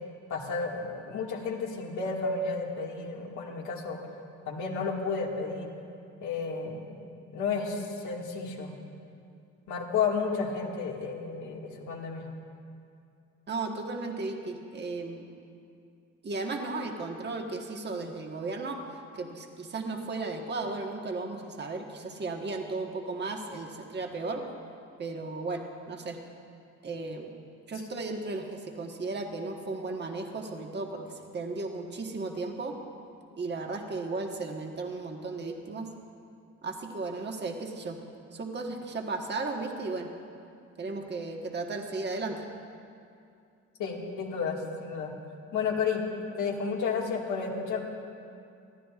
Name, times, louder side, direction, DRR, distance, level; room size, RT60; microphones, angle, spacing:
voice 1, 0.3-4.0 4.5-5.7 6.2-8.7 9.7-12.2 43.8-45.1 45.5-46.0 46.4-47.8, left 5 dB, 80° left, -1 dB, 2.0 m, -32 dB
voice 2, 13.5-15.3 16.2-18.8 19.1-24.4 25.0-26.2 26.8-27.3 27.7-32.7 33.4-35.9 36.6-38.0 38.3-40.1 40.8-42.4, right 3 dB, 35° right, 2 dB, 1.4 m, -35 dB
23.5 x 14.5 x 2.5 m, 2.5 s
cardioid pair, 90°, 30 cm